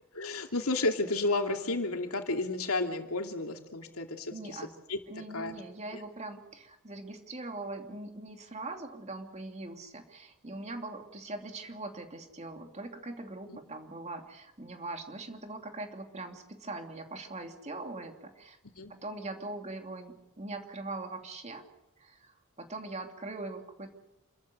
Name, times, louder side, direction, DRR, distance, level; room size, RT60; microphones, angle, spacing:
voice 1, 0.1-4.6 4.9-5.0 5.3-5.5 5.9-6.0 13.5-13.6 18.7-18.9, left 2 dB, 80° left, 4 dB, 2.8 m, -32 dB
voice 2, 4.3-4.7 5.1-18.6 18.9-21.6 22.0-23.9, right 2 dB, 30° right, 4 dB, 2.8 m, -41 dB
28.5 x 14.0 x 9.5 m, 0.95 s
head